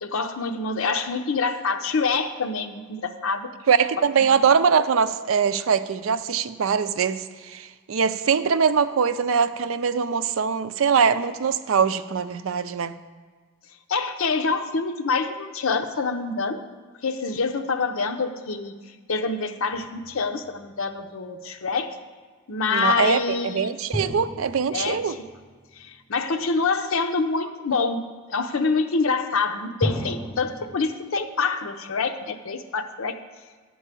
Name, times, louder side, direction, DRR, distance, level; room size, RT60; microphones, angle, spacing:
voice 1, 0.0-3.5 4.0-4.1 4.3-4.4 13.9-16.6 17.0-18.7 19.1-21.9 22.5-23.7 24.7-25.1 25.8-33.2, left 4 dB, 85° left, 8 dB, 0.7 m, -26 dB
voice 2, 3.7-13.0 22.7-25.2, right 6 dB, 75° right, 13 dB, 0.5 m, -22 dB
sound 1, 19.7-21.1 23.9-26.5 29.8-30.8, equal, ahead, 0.5 m, -34 dB
11.0 x 4.7 x 8.2 m, 1.4 s
head